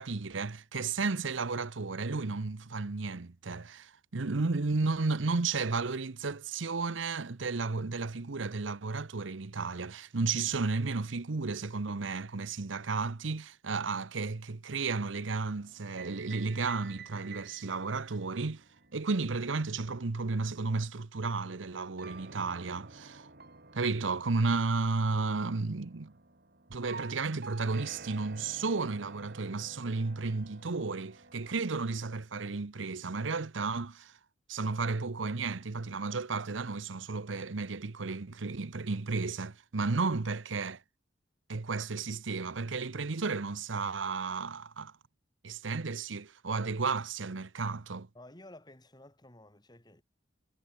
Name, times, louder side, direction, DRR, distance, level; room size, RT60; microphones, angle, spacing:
voice 1, 0.0-18.6 18.9-23.3 23.7-26.1 26.7-34.2 34.5-40.8 41.5-44.9 45.4-48.1, right 4 dB, 80° right, 0.9 m, -33 dB
sound 1, 15.1-21.0 22.0-32.0, right 4 dB, 55° right, 4.6 m, -51 dB
voice 2, 48.1-50.0, left 1 dB, 20° left, 3.1 m, -53 dB
head